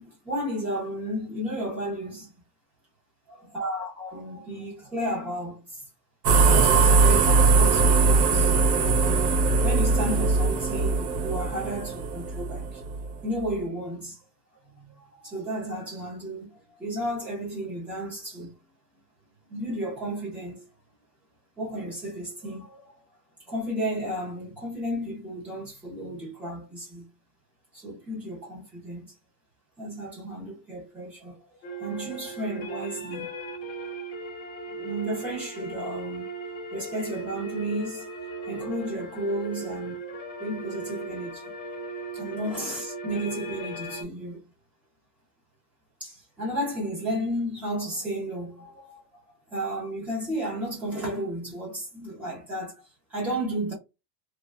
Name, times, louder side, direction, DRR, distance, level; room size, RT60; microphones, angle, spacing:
voice 1, 0.0-2.3 3.3-5.8 6.5-8.5 9.6-12.8 13.2-14.2 14.7-18.5 19.5-20.6 21.6-23.0 23.5-27.0 27.7-29.1 29.8-31.4 31.6-33.3 34.7-36.3 36.7-38.0 38.3-40.0 40.4-41.5 42.1-44.4 46.0-49.0 49.5-52.7 53.1-53.7, right 1 dB, 5° right, 0.4 m, -33 dB
sound 1, 6.2-13.1, right 4 dB, 85° right, 1.2 m, -21 dB
sound 2, 31.6-44.0, right 2 dB, 40° left, 0.8 m, -37 dB
3.4 x 2.0 x 2.4 m
supercardioid pair, 165°, 47 cm